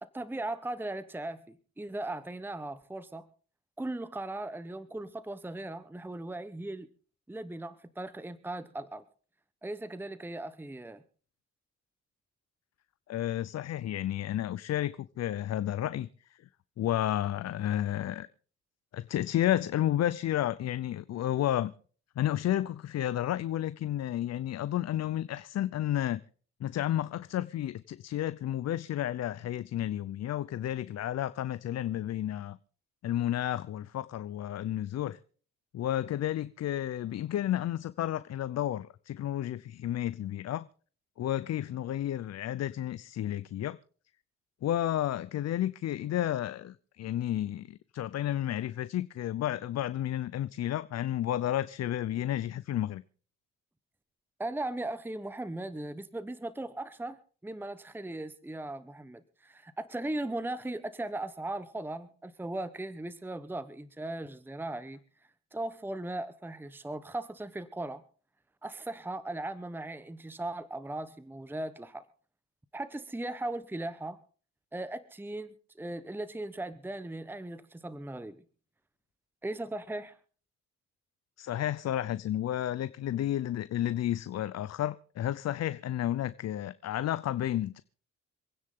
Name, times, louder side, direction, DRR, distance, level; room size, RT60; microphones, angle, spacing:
voice 1, 0.0-3.3 3.8-6.9 7.3-9.0 9.6-11.0 54.4-65.0 65.5-68.0 68.6-72.0 72.7-74.2 74.7-78.4 79.4-80.2, right 2 dB, 5° right, 0.9 m, -38 dB
voice 2, 13.1-16.1 16.8-18.3 18.9-21.7 22.2-26.2 26.6-32.6 33.0-35.2 35.7-40.7 41.2-43.8 44.6-53.0 81.4-87.8, left 12 dB, 60° left, 0.7 m, -31 dB
27.0 x 9.7 x 3.7 m
cardioid pair, 90°, 30 cm